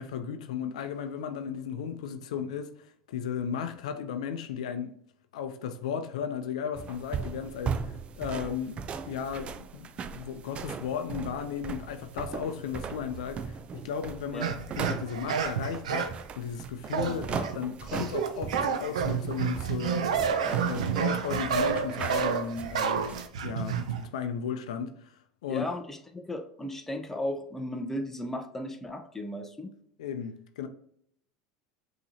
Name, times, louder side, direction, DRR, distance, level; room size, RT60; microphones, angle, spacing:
voice 1, 0.0-2.7 3.1-4.9 5.3-20.1 20.6-25.1 25.4-25.7 30.0-30.7, left 7 dB, 80° left, 0.5 m, -35 dB
sound 1, 6.7-23.3, right 6 dB, 35° right, 0.4 m, -38 dB
sound 2, 14.4-16.2 16.9-17.5 17.9-24.0, right 6 dB, 90° right, 0.5 m, -29 dB
voice 2, 25.5-29.7, left 1 dB, 10° left, 0.6 m, -35 dB
5.7 x 2.9 x 2.8 m
hypercardioid pair, 100°, 3 cm